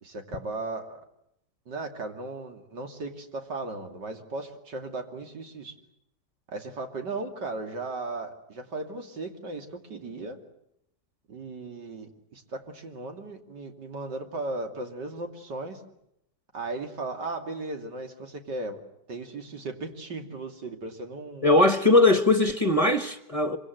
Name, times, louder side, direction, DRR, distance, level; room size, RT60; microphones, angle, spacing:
voice 1, 0.0-1.0 1.7-5.8 6.5-10.4 11.3-15.8 16.5-18.8 19.1-21.5, right 2 dB, 90° right, 3.4 m, -36 dB
voice 2, 21.4-23.6, left 2 dB, 20° left, 1.3 m, -20 dB
26.0 x 25.0 x 7.9 m
omnidirectional pair, 1.8 m